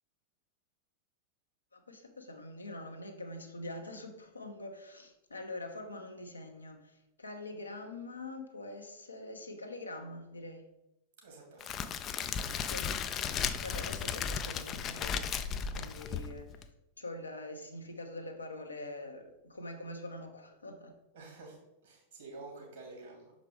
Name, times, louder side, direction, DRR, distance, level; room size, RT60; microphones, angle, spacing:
voice 1, 1.7-10.7 12.6-12.9 13.6-16.7 17.0-21.0, left 2 dB, 80° left, 4 dB, 0.9 m, -44 dB
voice 2, 11.2-11.7 16.0-16.1 21.1-21.6 21.8-23.3, right 3 dB, 60° right, 0 dB, 2.4 m, -49 dB
Crackle, 11.6-16.7, left 7 dB, 30° left, 0.4 m, -35 dB
6.6 x 5.0 x 3.5 m, 0.89 s
figure-of-eight pair, 90°, 0 cm